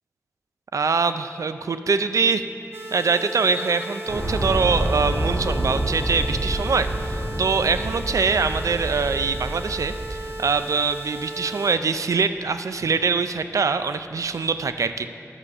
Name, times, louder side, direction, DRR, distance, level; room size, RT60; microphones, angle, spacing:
voice 1, 0.7-2.4 2.9-15.1, right 5 dB, 85° right, 10 dB, 0.4 m, -23 dB
sound 1, 2.7-11.8, right 2 dB, 50° right, 0.8 m, -36 dB
sound 2, 4.1-10.3, right 1 dB, 30° right, 2.7 m, -28 dB
9.9 x 6.9 x 6.6 m, 2.7 s
wide cardioid pair, 75°, 5 cm